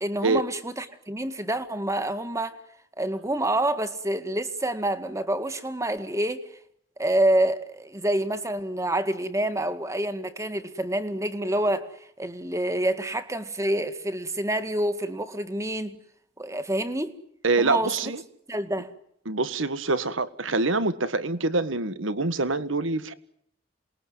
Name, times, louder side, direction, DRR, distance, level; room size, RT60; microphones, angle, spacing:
voice 1, 0.0-2.6 3.0-6.4 7.0-11.9 12.2-16.0 16.4-17.1 17.6-18.1 18.5-18.9, right 1 dB, 15° right, 2.0 m, -27 dB
voice 2, 17.4-18.2 19.2-23.1, right 3 dB, 85° right, 1.6 m, -25 dB
27.5 x 21.0 x 9.6 m
head